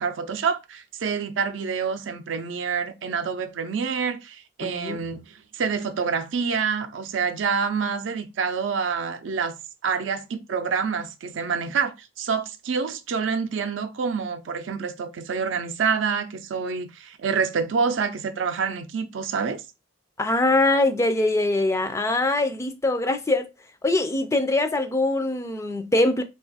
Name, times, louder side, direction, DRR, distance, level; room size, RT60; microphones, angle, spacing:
voice 1, 0.0-9.6 9.8-19.6, right 5 dB, 75° right, 0.4 m, -27 dB
voice 2, 4.6-5.0 20.2-23.5 23.8-26.2, left 2 dB, 15° left, 0.3 m, -23 dB
2.5 x 2.3 x 4.0 m
head